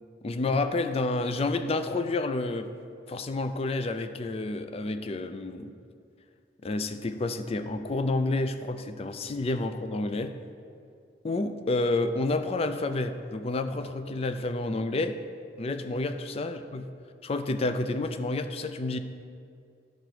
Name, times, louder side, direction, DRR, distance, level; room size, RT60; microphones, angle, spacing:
voice 1, 0.2-2.7 3.1-5.7 6.6-10.4 11.2-15.2 15.6-16.9 17.2-19.0, left 2 dB, 30° left, 9 dB, 0.4 m, -29 dB
11.5 x 3.9 x 4.6 m, 2.3 s
head